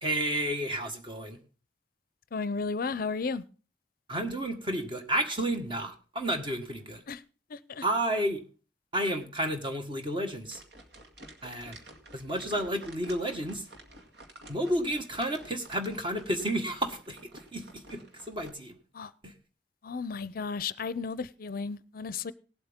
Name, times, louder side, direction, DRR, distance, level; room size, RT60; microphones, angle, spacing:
voice 1, 0.0-1.4 4.1-7.0 7.8-8.4 8.9-10.6 11.4-11.8 12.1-13.7 14.5-18.0 18.3-18.8 19.2-19.3, right 1 dB, 30° right, 1.6 m, -31 dB
voice 2, 2.3-3.4 7.1-7.2 7.5-7.8 18.9-19.1 19.8-22.3, left 4 dB, 55° left, 0.5 m, -34 dB
sound 1, 10.4-18.5, right 1 dB, 65° right, 2.1 m, -51 dB
18.0 x 7.9 x 3.6 m
head